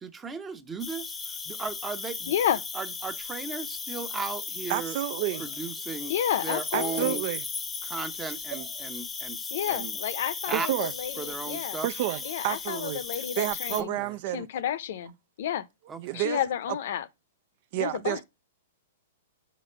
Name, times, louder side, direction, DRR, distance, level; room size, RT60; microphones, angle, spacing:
voice 1, 0.0-1.2 1.5-2.3 2.7-5.0 5.4-6.1 6.4-7.2 7.8-10.0 10.5-10.7 11.2-11.9 13.8-14.1 15.9-16.2, right 5 dB, 15° right, 0.8 m, -36 dB
Cricket, 0.8-13.8, left 5 dB, 15° left, 0.7 m, -36 dB
voice 2, 2.3-2.6 6.1-7.2 9.5-11.8 12.2-14.0 14.3-15.6 16.1-17.0 17.8-18.2, left 10 dB, 60° left, 0.6 m, -31 dB
voice 3, 4.7-5.5 6.7-7.4 8.5-8.7 10.5-10.9 11.8-14.5 16.0-16.4 17.7-18.2, right 15 dB, 50° right, 0.4 m, -30 dB
5.0 x 4.1 x 5.5 m
hypercardioid pair, 120°, 0 cm